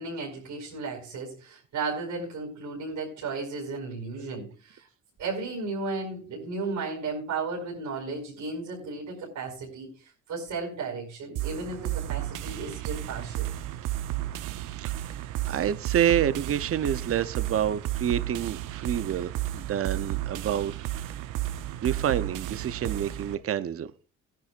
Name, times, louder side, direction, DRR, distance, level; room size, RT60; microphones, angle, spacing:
voice 1, 0.0-4.9 5.2-13.5, right 3 dB, 75° right, -2 dB, 5.2 m, -34 dB
sound 1, 11.4-23.4, right 14 dB, 90° right, 0.8 m, -33 dB
voice 2, 15.5-21.1 21.8-23.9, right 9 dB, 50° right, 13 dB, 0.7 m, -28 dB
17.5 x 10.5 x 2.5 m, 0.37 s
cardioid pair, 90°, 30 cm